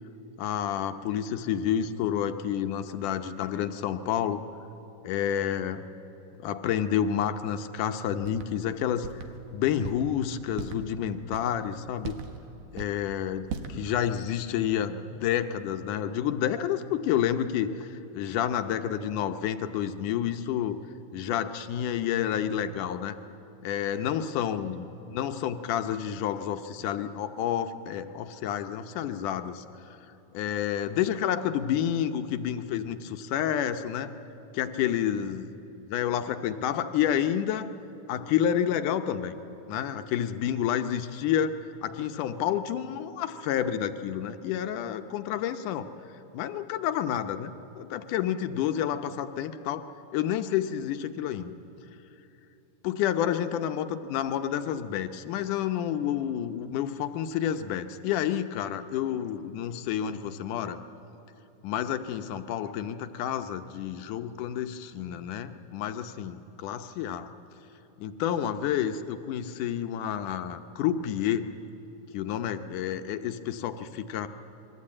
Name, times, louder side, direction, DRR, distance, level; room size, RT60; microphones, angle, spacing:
voice 1, 0.4-4.4 5.0-5.9 6.4-9.1 9.5-12.2 12.7-20.8 21.1-23.2 23.6-29.6 30.3-34.1 34.5-35.5 35.9-37.7 38.1-39.4 39.7-45.9 46.3-49.9 50.1-51.5 52.8-60.8 61.6-67.3 68.0-71.5 72.1-74.3, left 10 dB, 80° left, 8 dB, 2.4 m, -29 dB
sound 1, 8.2-8.5 9.0-9.3 9.8-10.1 10.5-10.8 11.3-11.6 12.0-12.4 12.7-13.0 13.5-13.8, right 6 dB, 80° right, 2.9 m, -37 dB
27.0 x 22.0 x 8.7 m, 3.0 s
omnidirectional pair, 3.6 m